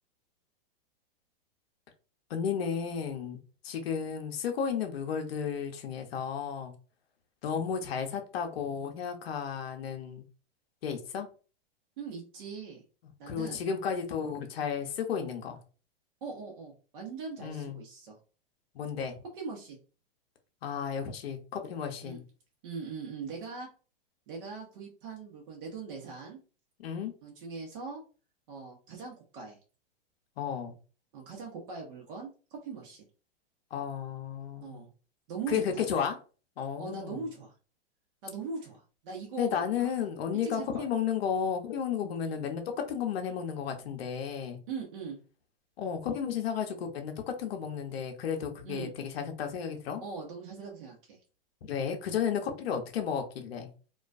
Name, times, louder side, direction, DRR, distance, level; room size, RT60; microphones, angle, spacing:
voice 1, 2.3-3.4 3.6-6.7 7.4-10.2 10.8-11.3 13.3-15.6 17.4-17.8 18.8-19.1 20.6-22.2 26.8-27.1 30.4-30.7 33.7-34.8 35.5-36.2 36.6-37.2 39.4-44.6 45.8-50.0 51.6-53.7, left 7 dB, 80° left, 4 dB, 0.6 m, -33 dB
voice 2, 12.0-12.8 13.2-13.6 16.2-18.2 19.3-19.8 22.0-22.2 22.6-23.7 24.3-26.4 27.2-28.0 28.5-29.6 31.1-33.0 34.6-34.9 35.3-35.8 36.8-37.5 38.2-40.1 40.4-40.9 42.2-42.4 44.7-45.2 48.6-48.9 50.0-51.2, right 5 dB, 60° right, -1 dB, 0.8 m, -41 dB
2.3 x 2.2 x 2.4 m, 0.37 s
hypercardioid pair, 125°, 30 cm